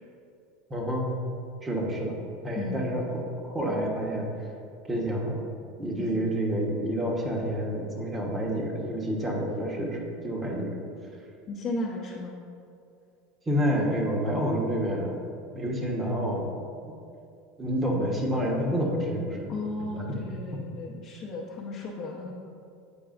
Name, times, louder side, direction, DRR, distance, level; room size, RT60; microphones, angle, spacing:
voice 1, 0.7-1.1 1.6-2.2 2.4-4.3 4.9-5.4 5.8-10.8 13.5-15.2 15.5-16.5 17.6-19.5 19.9-20.0, equal, 20° right, -1 dB, 1.2 m, -28 dB
voice 2, 2.5-2.9 6.0-6.1 11.5-12.4 19.5-22.3, left 2 dB, 40° left, -4 dB, 0.9 m, -35 dB
8.8 x 4.7 x 2.6 m, 2.5 s
supercardioid pair, 100°, 0 cm